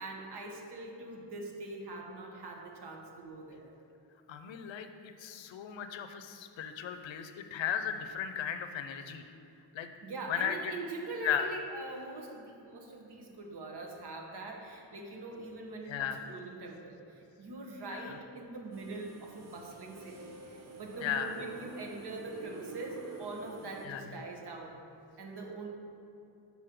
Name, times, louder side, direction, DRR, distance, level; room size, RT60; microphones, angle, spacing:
voice 1, 0.0-3.7 10.0-24.8 25.2-25.7, right 2 dB, 60° right, 0 dB, 1.2 m, -43 dB
voice 2, 4.3-9.2 9.7-9.9 10.3-10.7 11.2-11.5 15.9-16.2 17.9-18.2 21.0-21.3 23.8-24.0, left 9 dB, 75° left, 8 dB, 0.6 m, -35 dB
sound 1, 18.7-23.9, right 2 dB, 35° right, 0.7 m, -49 dB
5.4 x 4.9 x 6.0 m, 2.8 s
wide cardioid pair, 140°, 46 cm